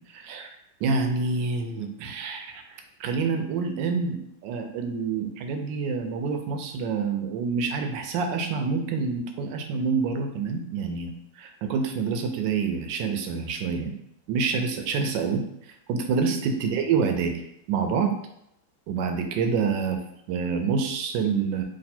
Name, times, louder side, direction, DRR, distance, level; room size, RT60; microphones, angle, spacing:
voice 1, 0.1-0.5 0.8-13.9 14.3-15.4 15.9-17.4 17.7-18.1 18.9-20.0 20.3-21.6, right 5 dB, 85° right, 5 dB, 1.3 m, -27 dB
3.2 x 2.6 x 4.2 m, 0.77 s
omnidirectional pair, 1.9 m